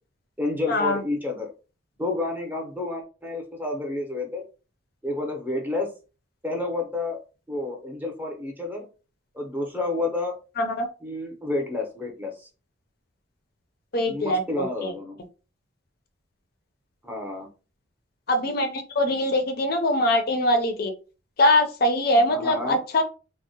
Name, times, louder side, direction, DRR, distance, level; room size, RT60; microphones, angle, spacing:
voice 1, 0.4-1.5 2.0-4.4 5.0-5.9 6.4-7.2 7.5-8.9 9.3-10.4 11.0-12.5 14.1-15.2 17.0-17.5 22.3-22.8, left 2 dB, 10° right, 1 dB, 0.6 m, -30 dB
voice 2, 13.9-14.9 18.3-20.9 21.4-23.0, left 1 dB, 50° left, 6 dB, 0.4 m, -22 dB
3.5 x 2.1 x 2.7 m, 0.33 s
head